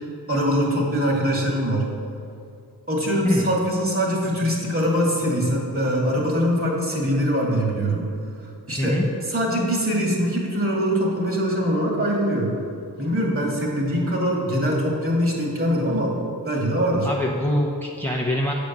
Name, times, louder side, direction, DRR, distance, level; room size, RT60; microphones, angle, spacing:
voice 1, 0.3-1.9 2.9-8.1 8.7-12.5 13.0-16.1 16.4-17.1, equal, 35° right, -2 dB, 2.3 m, -23 dB
voice 2, 17.0-18.5, equal, 5° left, -2 dB, 0.8 m, -24 dB
8.1 x 5.3 x 7.3 m, 2.5 s
cardioid pair, 80°, 38 cm